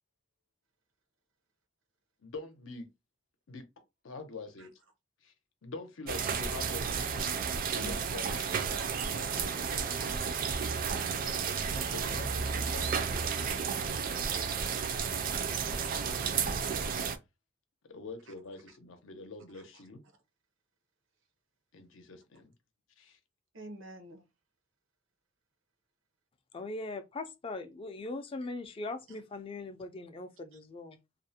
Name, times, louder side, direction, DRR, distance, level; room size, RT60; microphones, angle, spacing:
voice 1, 2.2-2.9 3.5-3.7 4.0-4.7 5.2-5.3 5.6-7.1 7.7-8.4 9.4-9.5 11.8-13.4 16.3-16.5 17.8-20.0 21.7-22.5 23.0-23.2, left 3 dB, 85° left, 0.6 m, -45 dB
sound 1, 6.1-17.2, right 6 dB, 45° right, 0.3 m, -32 dB
voice 2, 7.8-9.4 18.3-18.4 19.5-19.8 23.5-24.3 29.1-29.2, right 2 dB, 80° right, 0.7 m, -48 dB
voice 3, 26.5-31.0, left 2 dB, 30° left, 0.4 m, -40 dB
2.4 x 2.1 x 2.7 m
head